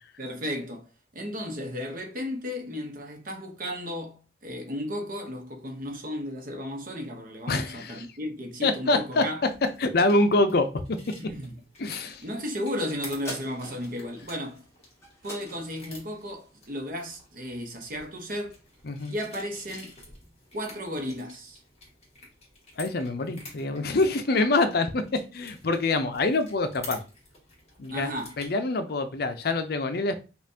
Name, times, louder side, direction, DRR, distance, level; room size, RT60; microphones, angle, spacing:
voice 1, 0.2-0.9 1.1-9.4 11.2-11.5 12.2-14.6 15.2-18.6 19.1-20.0 20.5-21.6 27.9-28.4, equal, 50° right, 0.9 m, -34 dB
voice 2, 7.5-8.1 8.6-9.2 9.8-10.7 11.8-12.2 18.8-19.1 22.8-25.0 25.3-27.0 27.8-28.1 28.4-30.2, left 2 dB, 60° left, 0.6 m, -25 dB
sound 1, 9.4-28.5, left 2 dB, 35° left, 1.7 m, -50 dB
sound 2, 13.2-18.0 18.5-18.6, left 1 dB, 15° left, 1.2 m, -45 dB
5.3 x 2.4 x 2.8 m
head